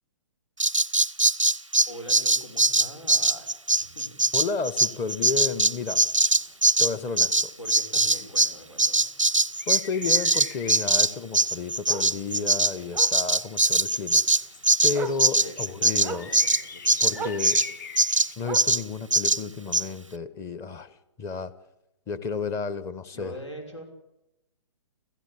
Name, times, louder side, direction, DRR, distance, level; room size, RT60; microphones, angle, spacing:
Bird vocalization bird call bird song, 0.6-8.5 8.8-17.7 18.0-18.3 18.5-18.8 19.1-19.4 19.7-19.8, right 2 dB, 90° right, 0.8 m, -22 dB
voice 1, 1.9-4.3 7.6-9.1 15.3-15.5 15.8-17.5 23.1-23.8, equal, 70° left, 4 dB, 5.8 m, -42 dB
voice 2, 4.3-6.0 6.8-7.5 9.7-14.2 14.8-16.3 17.0-17.6 18.4-21.5 22.1-23.3, left 5 dB, 20° left, 16 dB, 1.2 m, -32 dB
Bark, 5.4-5.6 6.0-6.1 6.5-6.6 6.9-7.0 8.4-8.5 11.0-11.1 11.9-12.1 12.9-13.2 14.4-14.5 14.9-15.3 16.0-16.4 17.1-17.5 18.4-18.9 19.8-19.9, right 7 dB, 10° right, 0.9 m, -36 dB
sound 1, 6.3-18.4, left 6 dB, 40° left, 1.7 m, -47 dB
29.5 x 15.5 x 8.6 m, 0.91 s
figure-of-eight pair, 125°, 16 cm